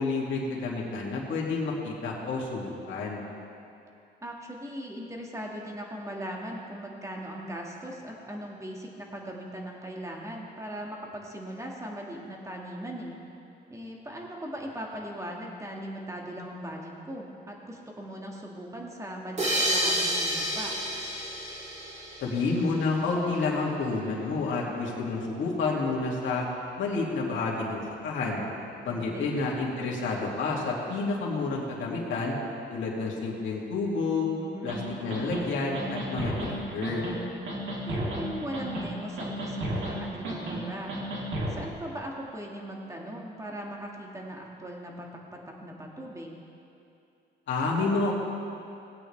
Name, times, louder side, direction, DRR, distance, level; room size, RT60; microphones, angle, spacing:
voice 1, 0.0-3.2 22.2-26.5 26.8-28.4 28.8-32.3 32.7-34.3 34.6-37.0 47.5-48.1, left 3 dB, 75° left, -3 dB, 2.3 m, -29 dB
voice 2, 4.2-13.2 13.7-20.7 28.9-29.3 34.4-34.7 37.9-41.0 41.5-46.3, equal, 15° right, -1 dB, 1.8 m, -39 dB
sound 1, 19.4-22.7, equal, 35° right, 2.5 m, -29 dB
sound 2, 34.7-34.8 35.1-35.4 35.7-36.5 36.8-37.1 37.5-38.2 38.5-38.9 39.2-39.9 40.2-40.6 40.9-41.5, right 1 dB, 70° right, 2.6 m, -32 dB
18.0 x 8.6 x 3.3 m, 2.6 s
cardioid pair, 90°, 20 cm